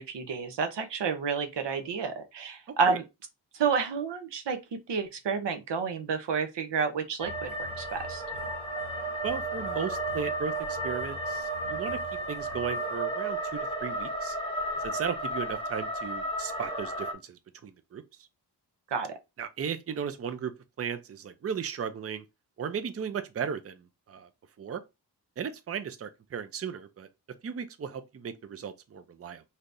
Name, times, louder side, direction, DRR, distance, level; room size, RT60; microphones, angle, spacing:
voice 1, 0.0-3.0 3.5-8.2 18.9-19.1, right 5 dB, 90° right, 0.8 m, -30 dB
voice 2, 2.7-3.0 9.2-12.0 12.3-14.4 14.8-18.0 19.4-20.5 20.8-22.2 22.6-24.3 24.6-24.8 25.4-27.1 27.4-29.4, right 7 dB, 35° right, 0.5 m, -36 dB
sound 1, 7.2-17.1, right 1 dB, 15° left, 0.7 m, -33 dB
sound 2, 7.2-13.0, left 3 dB, 55° right, 2.3 m, -48 dB
3.3 x 2.8 x 2.6 m
wide cardioid pair, 85°, 41 cm